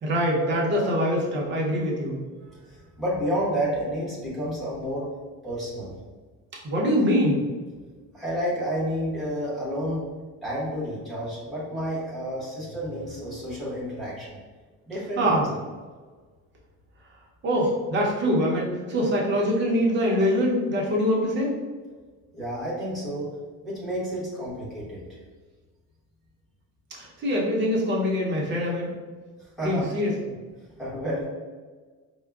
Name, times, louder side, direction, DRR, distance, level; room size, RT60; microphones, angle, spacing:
voice 1, 0.0-2.2 6.6-7.4 15.2-15.4 17.4-21.6 26.9-28.9 29.6-30.1, equal, 35° right, -3 dB, 0.7 m, -24 dB
voice 2, 2.4-5.1 5.4-5.9 8.1-10.0 10.4-14.4 14.9-15.4 22.3-23.3 23.6-25.0 29.6-29.9 30.8-31.2, equal, ahead, -8 dB, 1.0 m, -30 dB
4.6 x 2.2 x 2.3 m, 1.4 s
cardioid pair, 165°, 33 cm